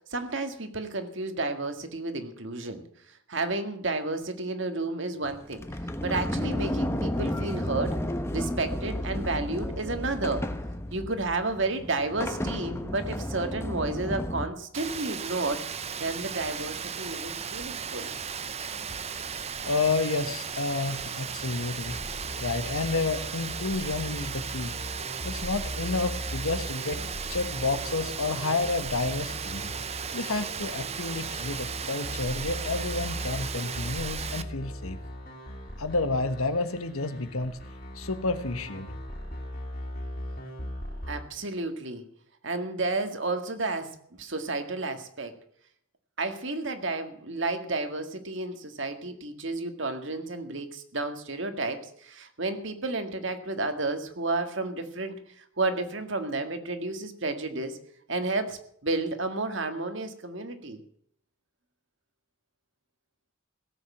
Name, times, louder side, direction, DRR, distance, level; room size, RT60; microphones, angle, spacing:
voice 1, 0.1-2.8 3.3-5.6 6.0-8.0 8.3-10.5 10.9-15.6 16.0-18.1 41.1-42.0 42.4-45.4 46.2-57.8 58.1-60.8, right 2 dB, 60° right, 7 dB, 1.9 m, -31 dB
Sliding door, 5.2-14.5, left 1 dB, 10° left, 1.1 m, -32 dB
Rain, 14.7-34.4, right 7 dB, 30° right, 0.7 m, -36 dB
voice 2, 19.7-22.0 22.4-24.7 25.2-27.0 27.3-29.7 30.1-35.0 35.8-37.6 37.9-38.9, left 3 dB, 85° left, 10 dB, 1.4 m, -30 dB
sound 1, 21.8-41.2, equal, 45° left, 3.9 m, -39 dB
17.5 x 8.0 x 7.4 m, 0.66 s
head